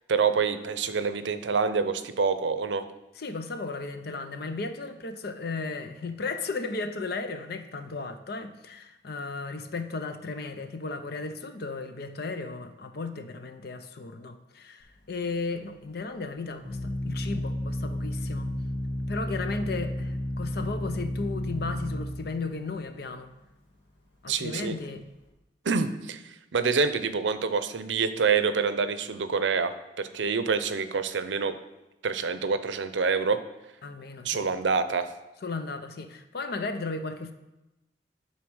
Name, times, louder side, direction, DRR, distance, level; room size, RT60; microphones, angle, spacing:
voice 1, 0.1-2.8 24.3-24.7 25.7-26.2 26.5-31.6 32.0-33.4 34.2-35.1, right 5 dB, 85° right, 11 dB, 0.6 m, -26 dB
voice 2, 3.2-18.5 19.1-23.3 24.2-25.0 33.8-34.4 35.4-37.3, left 3 dB, 60° left, 8 dB, 0.6 m, -35 dB
Organ, 14.8-25.3, left 1 dB, 75° left, 2.2 m, -33 dB
9.5 x 4.1 x 6.2 m, 0.99 s
head